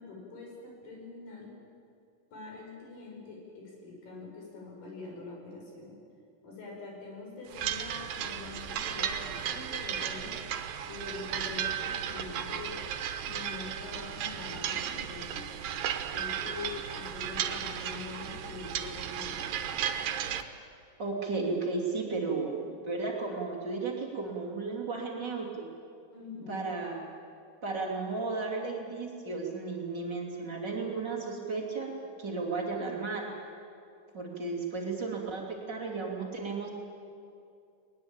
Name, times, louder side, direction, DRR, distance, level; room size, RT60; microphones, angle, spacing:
voice 1, 0.0-1.5 2.3-6.0 6.4-10.4 10.9-12.8 13.2-15.5 16.1-19.5 26.1-26.6, left 3 dB, 85° left, -2 dB, 7.3 m, -44 dB
sound 1, 7.5-20.4, right 9 dB, 90° right, 2.8 m, -35 dB
voice 2, 21.0-25.7 26.5-27.0 27.6-31.9 32.2-33.3 34.1-36.7, right 3 dB, 30° right, -3 dB, 3.4 m, -34 dB
20.5 x 20.5 x 9.0 m, 2.5 s
omnidirectional pair, 3.8 m